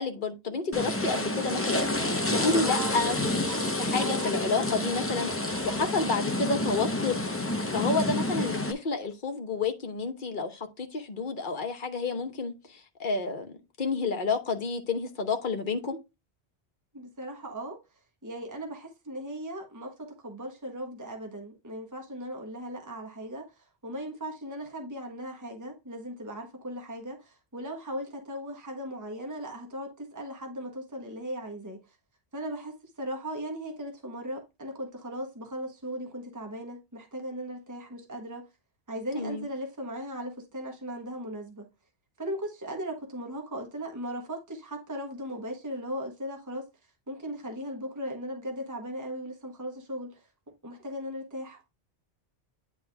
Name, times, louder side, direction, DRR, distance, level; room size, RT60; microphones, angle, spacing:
voice 1, 0.0-3.2 3.5-7.2 7.7-16.0 39.1-39.5, left 4 dB, 50° left, 1.3 m, -30 dB
sound 1, 0.7-8.7, left 2 dB, 15° left, 0.8 m, -29 dB
sound 2, 1.8-4.7 5.5-6.2, right 4 dB, 40° right, 0.9 m, -41 dB
voice 2, 16.9-17.8 18.2-31.8 32.3-38.4 38.9-41.6 42.2-46.6 47.1-50.3 50.6-51.6, equal, 15° right, 1.4 m, -38 dB
9.7 x 3.7 x 3.4 m
omnidirectional pair, 1.1 m